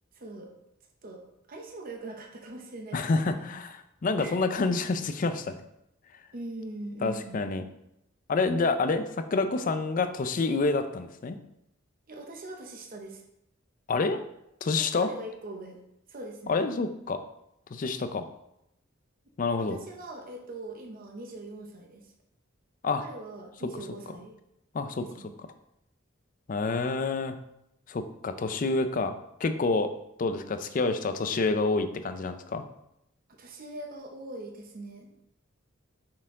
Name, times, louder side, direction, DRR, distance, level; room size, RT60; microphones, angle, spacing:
voice 1, 0.1-0.5 1.0-1.2 1.5-3.5 4.2-4.4 6.3-7.4 12.1-13.2 14.7-15.8 16.1-16.6 19.6-22.1 23.0-24.4 25.0-25.4 33.4-35.1, right 2 dB, 45° right, 2 dB, 0.8 m, -42 dB
voice 2, 2.9-3.7 4.0-5.6 7.0-7.6 8.3-11.4 13.9-14.2 14.6-15.1 16.5-17.2 17.7-18.3 19.4-19.8 22.8-23.0 24.7-25.0 26.5-27.4 27.9-29.9 30.2-32.7, left 3 dB, 40° left, 10 dB, 0.4 m, -28 dB
5.9 x 4.4 x 3.6 m, 0.82 s
head